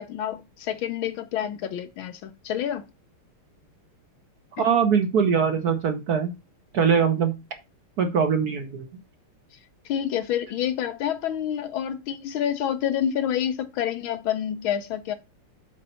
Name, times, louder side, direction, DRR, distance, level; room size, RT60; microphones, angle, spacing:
voice 1, 0.0-2.8 4.6-4.7 9.8-15.1, left 10 dB, 75° left, 1.5 m, -28 dB
voice 2, 4.6-6.3 6.7-7.3 8.0-8.8, right 6 dB, 55° right, 1.2 m, -22 dB
8.6 x 4.0 x 5.6 m
omnidirectional pair, 2.4 m